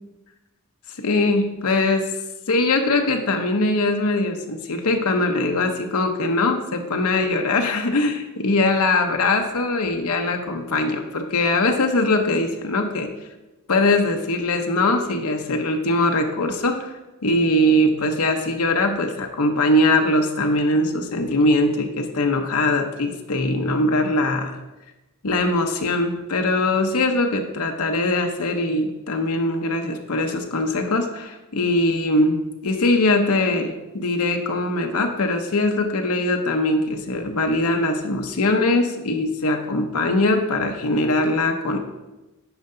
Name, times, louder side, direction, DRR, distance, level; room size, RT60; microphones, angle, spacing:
voice 1, 1.0-2.1 2.5-13.1 13.7-16.8 17.2-24.5 25.2-41.8, left 2 dB, 75° left, 4 dB, 0.8 m, -21 dB
9.3 x 5.5 x 3.8 m, 1.1 s
head